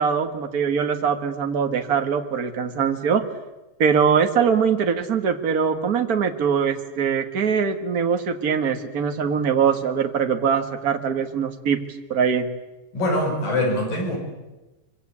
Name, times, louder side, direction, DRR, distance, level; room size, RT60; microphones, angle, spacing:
voice 1, 0.0-3.3 3.8-11.8 12.1-12.4, right 6 dB, 40° right, 6 dB, 1.3 m, -22 dB
voice 2, 12.9-14.2, left 1 dB, 80° left, 1 dB, 7.4 m, -23 dB
24.0 x 24.0 x 8.6 m, 1.1 s
omnidirectional pair, 3.9 m